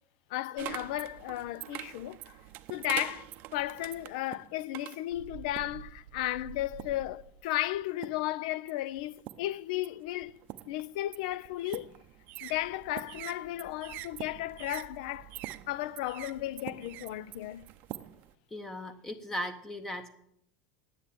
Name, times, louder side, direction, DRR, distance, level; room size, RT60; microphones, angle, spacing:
voice 1, 0.3-2.2 2.7-10.3 10.7-11.9 12.4-15.3 15.7-17.7, left 15 dB, 70° left, 0.5 m, -34 dB
sound 1, 0.6-5.9 6.5-7.1 7.7-8.3 8.7-18.3, right 15 dB, 45° right, 0.6 m, -44 dB
Bird, 5.1-7.6, right 10 dB, 85° right, 1.1 m, -48 dB
voice 2, 18.5-20.1, equal, 10° left, 0.8 m, -37 dB
9.7 x 7.5 x 8.5 m
supercardioid pair, 145°, 4 cm